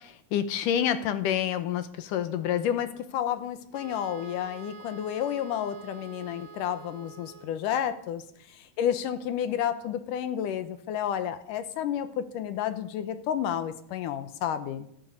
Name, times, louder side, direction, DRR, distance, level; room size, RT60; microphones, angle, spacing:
voice 1, 0.0-8.2 8.8-14.9, left 9 dB, 80° left, 11 dB, 2.5 m, -30 dB
Wind instrument woodwind instrument, 3.7-7.8, right 6 dB, 90° right, 2.8 m, -47 dB
14.0 x 13.0 x 6.9 m, 0.69 s
omnidirectional pair, 3.8 m